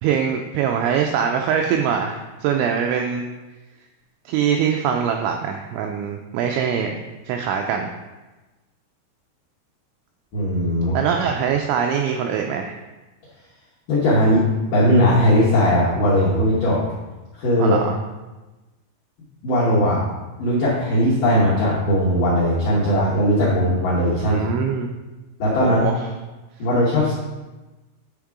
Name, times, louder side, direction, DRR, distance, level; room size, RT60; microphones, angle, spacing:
voice 1, 0.0-3.3 4.3-7.0 7.3-7.9 10.9-12.8 17.6-18.0 24.2-24.9 25.6-26.0, right 7 dB, 85° right, 3 dB, 2.6 m, -23 dB
voice 2, 10.3-11.0 13.9-14.4 14.7-16.8 17.4-17.8 19.4-20.0 20.4-24.4 25.4-25.8 26.6-27.1, equal, 75° left, -7 dB, 1.9 m, -18 dB
10.0 x 3.6 x 4.7 m, 1.1 s
omnidirectional pair, 5.7 m